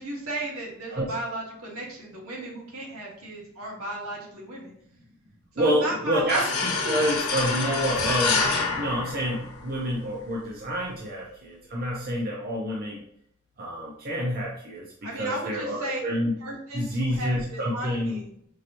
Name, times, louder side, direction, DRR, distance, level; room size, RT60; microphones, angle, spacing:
voice 1, 0.0-4.7 5.6-7.0 15.0-16.0 16.4-18.3, right 1 dB, 80° right, -3 dB, 1.4 m, -35 dB
voice 2, 5.6-8.4 8.8-13.0 13.6-14.8 15.2-16.3 16.7-18.2, equal, 45° right, -3 dB, 0.7 m, -28 dB
sound 1, 6.3-9.9, left 4 dB, 90° left, 0.8 m, -27 dB
sound 2, 7.9-12.5, equal, 25° right, 1.3 m, -49 dB
4.7 x 2.9 x 2.6 m, 0.68 s
head